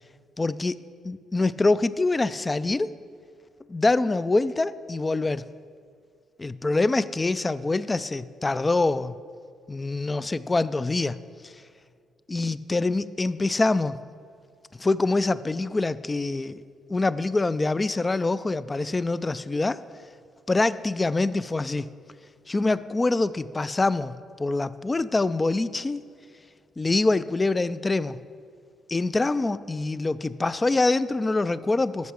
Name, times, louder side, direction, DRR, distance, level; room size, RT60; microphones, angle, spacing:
voice 1, 0.4-0.7 1.0-2.9 3.7-5.5 6.4-9.1 9.7-11.2 11.4-11.5 12.3-14.0 14.8-16.6 16.9-19.8 20.5-21.9 22.5-26.0 26.8-28.2 28.9-32.1, left 3 dB, 20° left, 16 dB, 0.3 m, -25 dB
13.5 x 5.8 x 6.4 m, 2.2 s
cardioid pair, 90°, 0 cm